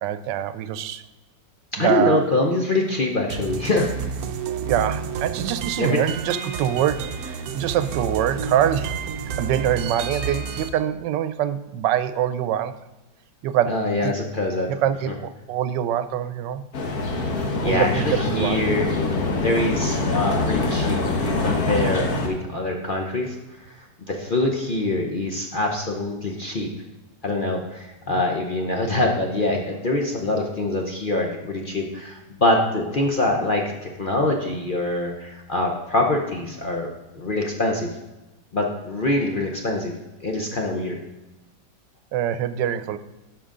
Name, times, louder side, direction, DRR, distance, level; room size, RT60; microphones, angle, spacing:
voice 1, 0.0-1.0 1.8-2.3 4.6-9.0 9.4-12.8 13.4-14.1 14.7-16.6 17.6-18.6 42.1-43.0, right 10 dB, 90° right, 13 dB, 1.2 m, -24 dB
voice 2, 1.7-4.2 5.8-6.0 13.7-14.7 17.6-18.9 19.3-26.7 27.2-37.9 38.5-39.9 40.2-41.0, left 2 dB, 45° left, 1 dB, 0.7 m, -24 dB
sound 1, 3.3-10.7, right 6 dB, 65° right, 1.0 m, -30 dB
sound 2, 16.7-22.3, left 3 dB, 60° left, 1.6 m, -24 dB
12.5 x 4.9 x 3.8 m, 1.0 s
omnidirectional pair, 1.9 m